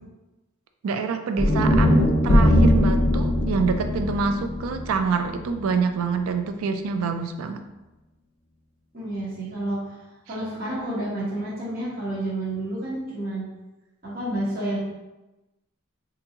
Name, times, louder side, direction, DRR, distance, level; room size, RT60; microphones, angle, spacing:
voice 1, 0.8-7.6, right 5 dB, 70° right, 7 dB, 0.3 m, -26 dB
sound 1, 1.4-5.6, equal, 45° left, 0.6 m, -20 dB
voice 2, 8.9-9.9 10.3-13.5 14.0-14.8, right 1 dB, 40° right, -8 dB, 1.0 m, -29 dB
3.8 x 2.6 x 2.7 m, 1.0 s
head